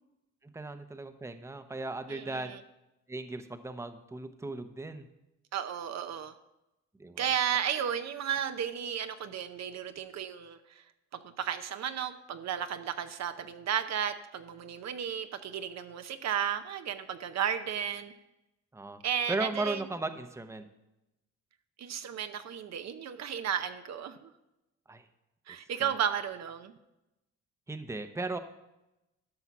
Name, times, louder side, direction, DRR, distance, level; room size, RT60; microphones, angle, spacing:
voice 1, 0.4-2.5 3.1-5.1 7.0-7.2 18.7-19.0 19.3-20.6 24.9-25.0 25.8-25.9 27.7-28.4, right 2 dB, 10° right, 0.8 m, -36 dB
voice 2, 2.1-2.6 5.5-6.3 7.2-10.8 11.1-18.1 19.0-19.9 21.8-24.3 25.5-26.8, right 9 dB, 60° right, 0.8 m, -34 dB
12.5 x 5.6 x 6.0 m
cardioid pair, 90°, 30 cm